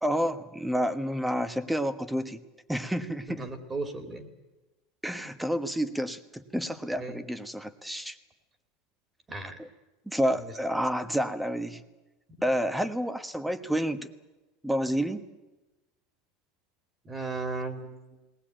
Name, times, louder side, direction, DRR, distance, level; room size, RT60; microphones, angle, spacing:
voice 1, 0.0-2.4 2.7-3.5 5.0-8.2 9.6-9.7 10.1-11.8 12.4-14.1 14.6-15.2, equal, 5° right, 11 dB, 1.2 m, -29 dB
voice 2, 3.4-4.3 7.0-7.2 9.3-9.6 10.4-10.5 17.0-18.0, right 3 dB, 20° right, 7 dB, 2.6 m, -35 dB
20.0 x 19.0 x 9.0 m, 1.1 s
supercardioid pair, 125°, 0 cm